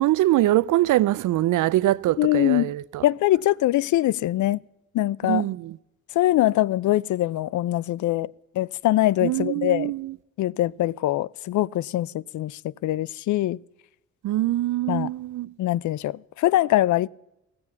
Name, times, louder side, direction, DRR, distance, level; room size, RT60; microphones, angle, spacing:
voice 1, 0.0-3.0 5.2-5.8 9.2-10.2 14.2-15.5, right 15 dB, 75° right, 0.5 m, -23 dB
voice 2, 2.2-2.7 3.0-4.6 4.9-5.5 6.1-8.3 8.5-9.9 10.4-13.6 14.9-15.1 15.6-17.1, left 15 dB, 70° left, 0.4 m, -23 dB
16.0 x 7.8 x 7.0 m
cardioid pair, 80°, 31 cm